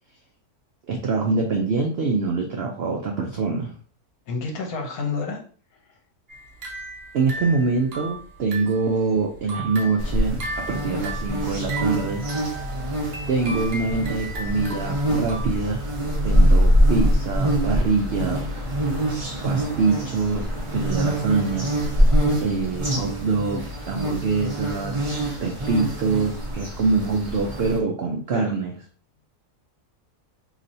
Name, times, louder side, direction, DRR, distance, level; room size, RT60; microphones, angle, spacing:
voice 1, 0.9-3.7 7.1-12.6 13.3-15.9 16.2-18.5 19.4-21.9 22.4-25.0 25.4-28.7, right 4 dB, 80° right, 2 dB, 0.5 m, -25 dB
voice 2, 4.3-5.4 28.3-28.5, left 4 dB, 70° left, 1 dB, 1.3 m, -29 dB
sound 1, 6.3-8.9 9.3-15.5, right 2 dB, 45° right, 0.9 m, -36 dB
sound 2, 10.0-27.8, equal, 30° right, 0.6 m, -24 dB
4.1 x 3.0 x 2.6 m, 0.43 s
omnidirectional pair, 1.7 m